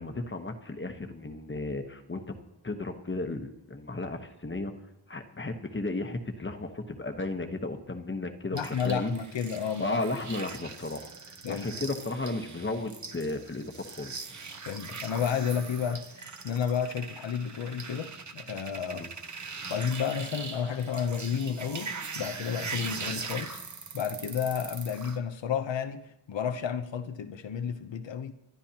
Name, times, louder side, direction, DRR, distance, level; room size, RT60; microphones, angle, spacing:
voice 1, 0.0-2.2 2.6-4.7 5.1-9.1 9.8-11.1 11.5-14.1 18.9-19.1, left 2 dB, 25° left, 1.1 m, -34 dB
voice 2, 8.5-10.0 11.4-11.7 14.6-19.0 19.7-23.6 23.9-28.3, left 7 dB, 85° left, 0.9 m, -31 dB
sound 1, 8.5-25.2, right 4 dB, 40° right, 1.0 m, -41 dB
27.0 x 11.5 x 2.9 m
wide cardioid pair, 90°, 43 cm